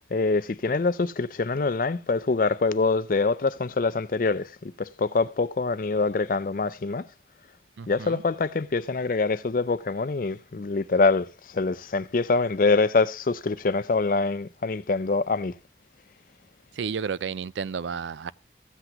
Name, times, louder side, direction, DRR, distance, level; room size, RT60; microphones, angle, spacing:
voice 1, 0.1-7.0 7.9-15.5, left 3 dB, 50° left, 0.5 m, -25 dB
voice 2, 7.8-8.2 16.7-18.3, right 6 dB, 85° right, 0.4 m, -32 dB
15.0 x 8.0 x 2.9 m
head